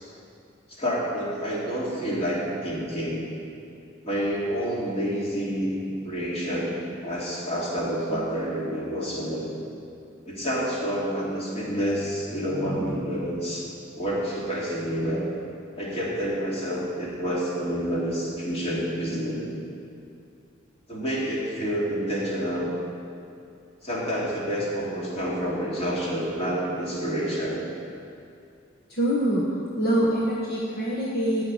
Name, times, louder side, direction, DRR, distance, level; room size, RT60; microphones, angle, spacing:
voice 1, 0.7-3.2 4.0-5.7 6.0-9.5 10.2-13.7 14.0-15.3 15.8-19.5 20.9-22.8 23.8-27.6, equal, 30° left, -5 dB, 2.9 m, -28 dB
voice 2, 28.9-29.5 29.8-31.4, right 1 dB, 50° left, -5 dB, 1.4 m, -24 dB
14.5 x 5.8 x 9.6 m, 2.5 s
head